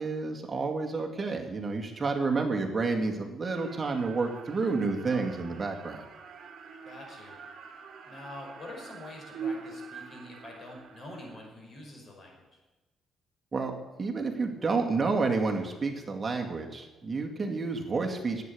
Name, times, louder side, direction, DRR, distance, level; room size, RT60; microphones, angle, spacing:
voice 1, 0.0-6.0 13.5-18.4, right 4 dB, 30° right, 2 dB, 2.2 m, -30 dB
sound 1, 3.4-11.5, right 5 dB, 60° right, 1.6 m, -44 dB
voice 2, 6.8-7.4 8.0-12.6, left 1 dB, 45° left, 0 dB, 5.3 m, -46 dB
10.5 x 8.6 x 9.8 m, 1.1 s
cardioid pair, 90°, 0 cm